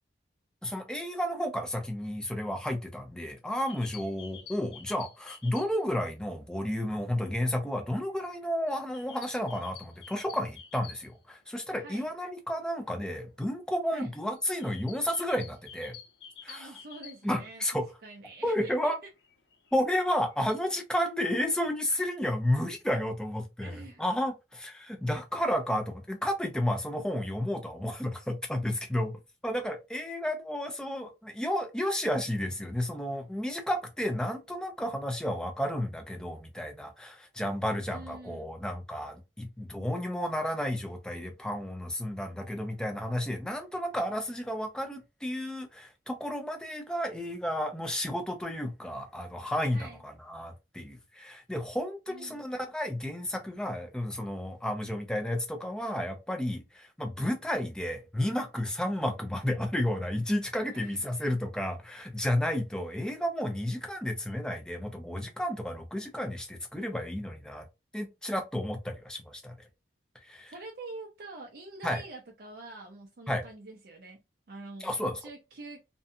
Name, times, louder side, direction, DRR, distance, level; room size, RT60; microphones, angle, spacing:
voice 1, 0.6-15.9 16.5-16.7 17.2-17.9 18.4-19.0 19.7-29.1 29.4-67.7 67.9-69.5 70.3-70.5 71.8-72.0 73.3-73.4 74.8-75.1, left 1 dB, 5° left, 0.4 m, -32 dB
sound 1, 3.5-6.0 6.2-6.3 6.6-11.5 11.8-11.9 12.1-12.4 12.9-17.9 18.3-20.6, left 7 dB, 75° left, 0.8 m, -51 dB
voice 2, 16.5-18.9 23.6-24.0 37.9-38.5 49.7-50.0 52.1-52.4 60.7-61.0 70.5-74.2 74.5-76.0, right 2 dB, 55° right, 0.4 m, -46 dB
2.6 x 2.2 x 2.5 m
head